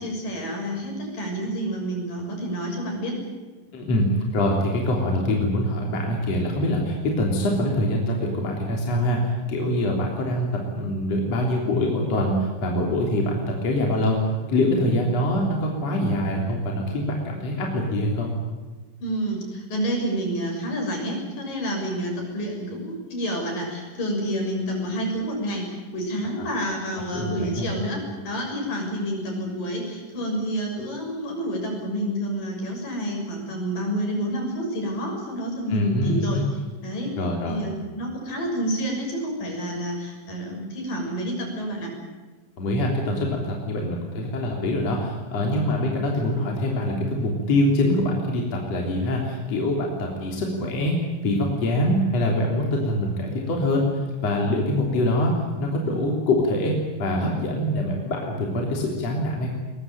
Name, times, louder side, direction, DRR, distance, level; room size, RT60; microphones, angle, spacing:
voice 1, 0.0-3.2 19.0-36.4 36.8-37.1 37.5-41.9 45.4-45.6, equal, 70° left, 1 dB, 8.2 m, -29 dB
voice 2, 3.7-18.3 26.4-26.5 27.1-27.7 35.7-36.5 37.2-37.6 42.6-53.9 54.2-59.5, left 1 dB, 45° left, -1 dB, 4.4 m, -24 dB
22.5 x 21.0 x 9.1 m, 1.3 s
omnidirectional pair, 4.0 m